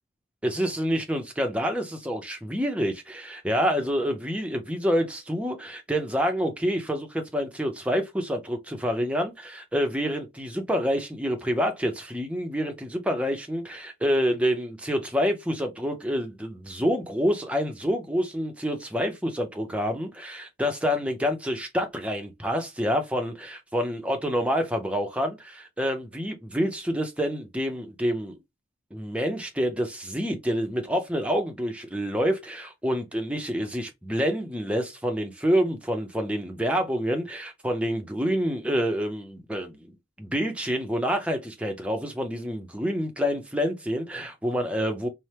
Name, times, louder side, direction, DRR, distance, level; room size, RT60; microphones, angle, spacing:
voice 1, 0.4-28.4 28.9-45.1, equal, 5° right, 0.6 m, -27 dB
4.3 x 2.1 x 3.3 m
head